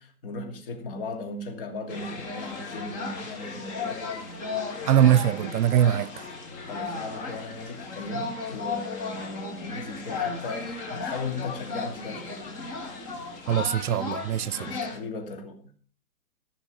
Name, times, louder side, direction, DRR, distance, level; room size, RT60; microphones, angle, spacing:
voice 1, 0.0-4.2 6.7-12.5 14.6-15.8, left 3 dB, 35° left, 2.6 m, -37 dB
sound 1, 1.9-15.0, left 4 dB, 15° left, 1.7 m, -35 dB
voice 2, 4.9-6.1 13.5-14.7, right 10 dB, 70° right, 0.6 m, -22 dB
14.5 x 6.3 x 6.6 m
hypercardioid pair, 165°, 45 cm